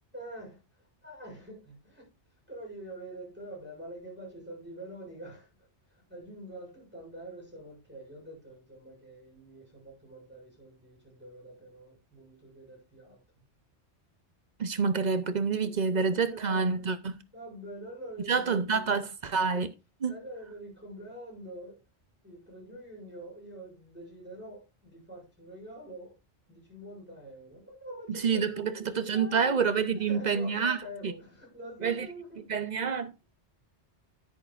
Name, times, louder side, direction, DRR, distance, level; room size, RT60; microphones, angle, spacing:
voice 1, 0.1-2.1 2.5-13.2 15.6-16.9 17.3-18.9 20.1-21.8 22.2-26.2 26.5-32.5, right 1 dB, 10° right, 7.2 m, -46 dB
voice 2, 14.6-17.1 18.3-19.7 20.0-20.1 28.1-30.8 31.0-31.1 31.8-32.1 32.5-33.2, right 5 dB, 45° right, 0.8 m, -28 dB
10.5 x 10.0 x 2.5 m
omnidirectional pair, 1.1 m